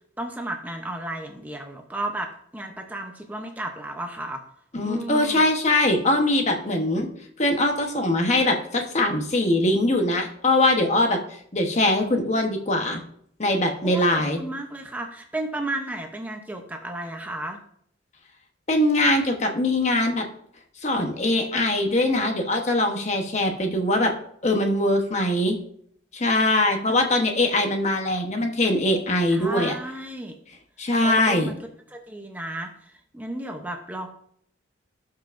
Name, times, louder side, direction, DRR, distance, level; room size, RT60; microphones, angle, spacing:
voice 1, 0.2-4.4 4.8-5.4 13.8-17.6 29.3-30.4 31.0-31.5 31.9-32.7 33.1-34.1, right 1 dB, 10° right, 3 dB, 0.7 m, -33 dB
voice 2, 4.7-7.1 7.4-11.2 11.5-13.0 13.4-14.4 18.7-20.2 20.8-24.1 24.4-25.6 26.1-29.7 30.8-31.5, left 1 dB, 35° left, 3 dB, 1.0 m, -22 dB
16.5 x 5.7 x 2.6 m, 0.67 s
head